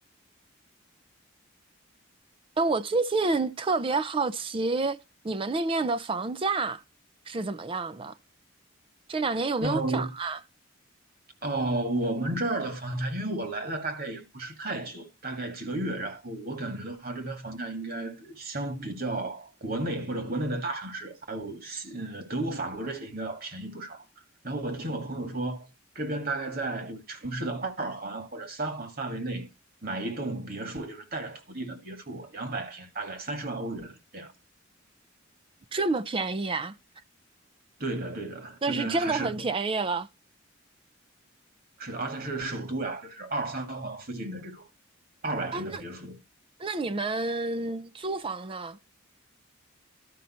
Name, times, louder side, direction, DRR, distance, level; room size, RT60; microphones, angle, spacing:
voice 1, 2.6-5.0 5.2-6.8 7.3-8.1 9.1-10.4 35.7-36.8 38.6-40.1 45.5-45.8 46.6-48.8, right 3 dB, 25° right, 0.4 m, -28 dB
voice 2, 9.6-10.1 11.4-24.0 24.4-25.7 26.0-29.5 29.8-34.3 37.8-39.5 41.8-44.6 45.2-46.2, right 2 dB, 50° right, 2.0 m, -33 dB
12.5 x 5.4 x 4.2 m
head